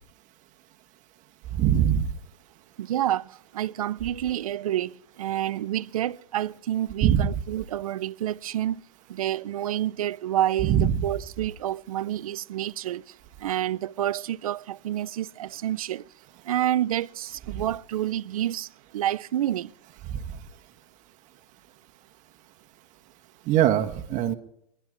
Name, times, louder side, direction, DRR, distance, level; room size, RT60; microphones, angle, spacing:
voice 1, 1.5-2.1 7.0-7.3 10.6-11.0 20.1-20.2 23.5-24.3, right 10 dB, 45° right, 1.6 m, -22 dB
voice 2, 2.8-8.8 9.1-16.0 16.4-19.7, right 12 dB, 85° right, 0.5 m, -29 dB
25.5 x 11.5 x 3.8 m
hypercardioid pair, 105°, 18 cm